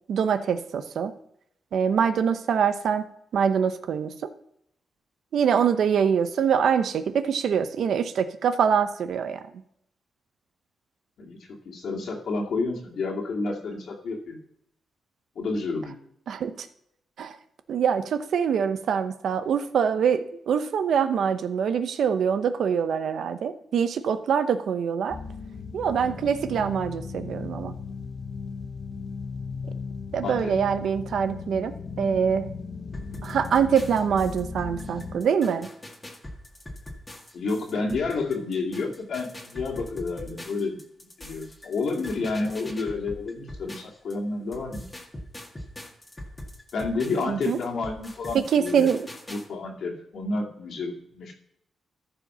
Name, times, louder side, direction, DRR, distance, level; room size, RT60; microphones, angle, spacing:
voice 1, 0.1-1.1 1.7-4.3 5.3-9.4 16.3-16.7 17.2-17.3 17.7-25.2 25.7-27.7 30.1-32.5 33.2-35.7 47.3-47.6 48.3-49.1, right 7 dB, 75° right, 10 dB, 0.8 m, -24 dB
voice 2, 11.7-14.4 15.4-16.0 26.0-26.3 30.2-30.5 37.3-40.8 41.2-44.8 46.7-48.9 49.3-51.3, left 3 dB, 70° left, 0 dB, 2.4 m, -30 dB
sound 1, 25.1-35.2, left 5 dB, 50° left, 0.9 m, -37 dB
sound 2, 32.9-44.1 44.5-49.5, left 1 dB, 15° left, 1.8 m, -42 dB
14.0 x 5.1 x 5.6 m, 0.74 s
cardioid pair, 110°, 0 cm